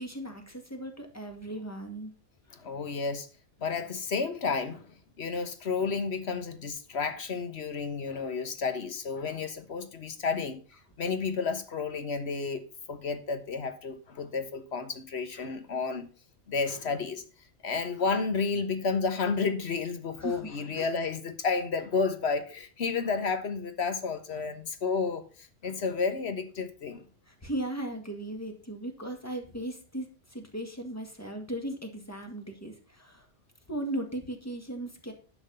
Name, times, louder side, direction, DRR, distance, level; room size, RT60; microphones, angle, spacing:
voice 1, 0.0-2.1 20.2-20.9 27.3-33.3 33.7-35.1, right 1 dB, 15° left, 2.0 m, -37 dB
voice 2, 2.5-3.3 3.6-10.6 11.0-16.1 16.5-17.2 17.6-27.0, left 4 dB, 90° left, 1.5 m, -31 dB
10.5 x 5.9 x 5.5 m
omnidirectional pair, 1.1 m